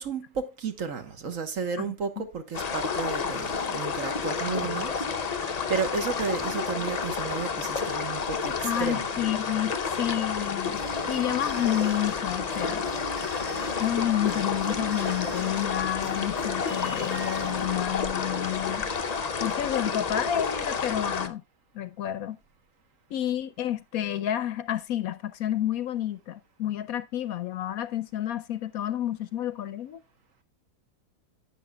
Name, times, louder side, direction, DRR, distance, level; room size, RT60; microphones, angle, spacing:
voice 1, 0.0-9.0, right 5 dB, 55° right, 1.5 m, -33 dB
sound 1, 2.5-21.3, left 5 dB, 45° left, 0.5 m, -30 dB
voice 2, 4.5-4.8 8.6-10.8 11.1-12.8 13.8-18.8 19.4-21.4 21.7-22.4 23.1-30.0, left 11 dB, 70° left, 1.0 m, -30 dB
sound 2, 10.8-17.8, right 1 dB, 80° right, 4.1 m, -41 dB
11.0 x 8.4 x 2.2 m
omnidirectional pair, 1.7 m